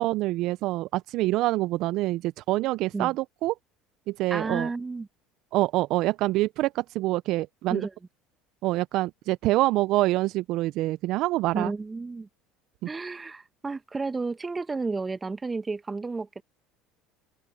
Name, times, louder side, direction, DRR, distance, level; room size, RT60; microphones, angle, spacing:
voice 1, 0.0-3.5 4.1-4.7 5.5-7.9 8.6-11.7, right 18 dB, 60° right, 0.7 m, -26 dB
voice 2, 4.3-5.1 7.7-7.9 11.5-12.3 12.9-16.4, right 3 dB, 20° right, 1.8 m, -32 dB
open air
hypercardioid pair, 75°, 0 cm